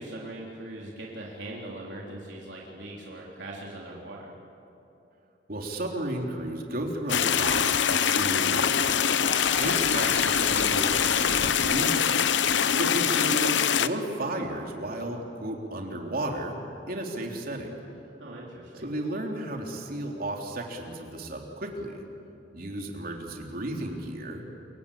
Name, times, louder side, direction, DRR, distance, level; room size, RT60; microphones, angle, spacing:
voice 1, 0.0-4.3 18.2-18.8, right 1 dB, 75° right, -4 dB, 3.8 m, -40 dB
voice 2, 5.5-9.2 9.5-12.1 12.7-16.6 16.9-17.8 18.8-22.0 22.5-24.4, right 1 dB, 55° right, 1 dB, 3.5 m, -33 dB
sound 1, 7.1-13.9, left 7 dB, 75° left, 0.9 m, -24 dB
sound 2, 9.3-13.3, left 4 dB, 35° left, 1.6 m, -38 dB
28.5 x 23.5 x 8.5 m, 2.8 s
head